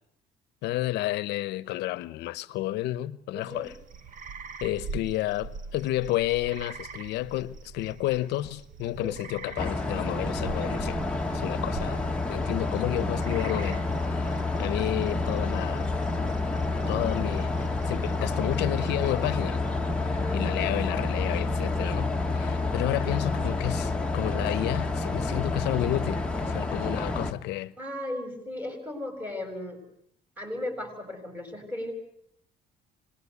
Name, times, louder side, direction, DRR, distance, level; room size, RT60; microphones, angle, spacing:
voice 1, 0.6-3.8 4.6-11.0 11.3-13.8 14.1-15.9 16.9-19.6 20.3-27.7, left 15 dB, 85° left, 1.0 m, -31 dB
voice 2, 3.3-3.7 7.6-7.7 8.9-9.2 20.1-20.4 27.8-29.8 30.4-31.9, left 1 dB, 10° right, 7.0 m, -36 dB
sound 1, 3.4-19.7, right 5 dB, 50° right, 1.6 m, -44 dB
sound 2, 9.6-27.3, left 2 dB, 5° left, 1.9 m, -29 dB
26.5 x 20.5 x 8.4 m
cardioid pair, 110°, 17 cm